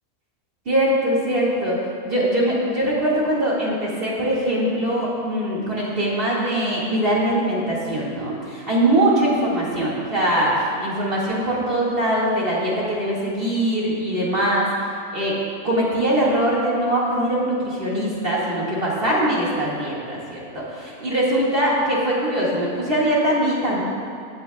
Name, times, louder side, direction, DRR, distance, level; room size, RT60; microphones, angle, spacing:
voice 1, 0.7-1.8 2.0-14.7 15.1-15.4 15.6-23.8, right 1 dB, 40° right, -6 dB, 2.1 m, -22 dB
16.5 x 8.6 x 2.3 m, 2.4 s
omnidirectional pair, 1.5 m